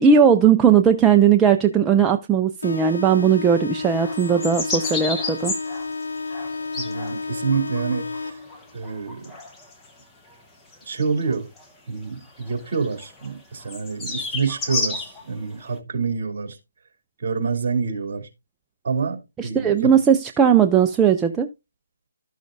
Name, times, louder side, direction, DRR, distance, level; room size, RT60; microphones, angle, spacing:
voice 1, 0.0-5.5 19.4-21.5, right 7 dB, 10° right, 0.4 m, -17 dB
sound 1, 2.6-8.6, left 3 dB, 85° left, 0.4 m, -31 dB
sound 2, 4.0-9.9 10.3-10.4 10.7-11.6 12.4-13.3 13.6-15.2 15.6-15.7, left 3 dB, 10° left, 1.0 m, -32 dB
voice 2, 6.8-8.4 8.7-9.2 10.9-11.5 11.9-16.6 17.2-18.3 18.8-19.9, right 5 dB, 45° right, 2.7 m, -27 dB
12.5 x 6.4 x 2.6 m
hypercardioid pair, 160°, 0 cm